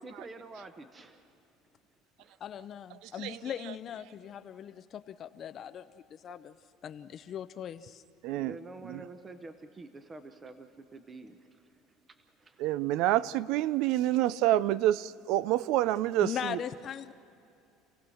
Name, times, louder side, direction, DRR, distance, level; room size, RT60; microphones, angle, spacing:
voice 1, 0.0-1.3 2.2-2.4 6.2-6.4 8.3-12.8, right 2 dB, 20° right, 9 dB, 0.8 m, -48 dB
voice 2, 2.4-6.5 6.8-8.0 16.2-17.1, left 9 dB, 35° left, 11 dB, 0.5 m, -39 dB
voice 3, 3.2-3.8 8.2-9.0 12.6-16.6, right 14 dB, 60° right, 19 dB, 0.5 m, -28 dB
28.0 x 17.0 x 6.3 m, 2.7 s
cardioid pair, 155°, 0 cm